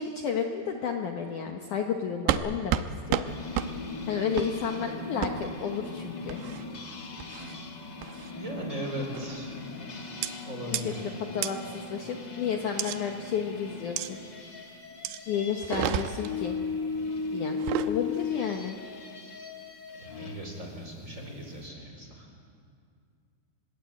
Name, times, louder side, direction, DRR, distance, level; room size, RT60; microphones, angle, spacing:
voice 1, 0.0-2.8 3.1-3.2 4.1-6.4 10.7-14.2 15.3-16.6 17.3-17.6 17.9-18.8, left 7 dB, 75° left, 3 dB, 1.8 m, -32 dB
sound 1, 2.3-2.4 2.7-2.9 3.1-3.3 3.5-3.7 4.4-4.5 5.2-5.3 6.3-6.6 7.2-7.5 8.0-8.3 9.1-9.4 10.2-10.3 10.7-10.8 11.4-11.5 12.8-13.0 14.0-14.1 15.0-15.2 15.6-16.3 17.5-17.9, right 12 dB, 80° right, 2.6 m, -30 dB
sound 2, 3.3-20.4, left 4 dB, 45° left, 1.4 m, -38 dB
voice 2, 8.3-9.6 10.4-11.2 20.0-22.3, equal, 15° right, 1 dB, 4.3 m, -38 dB
29.0 x 21.5 x 8.6 m, 2.3 s
omnidirectional pair, 5.6 m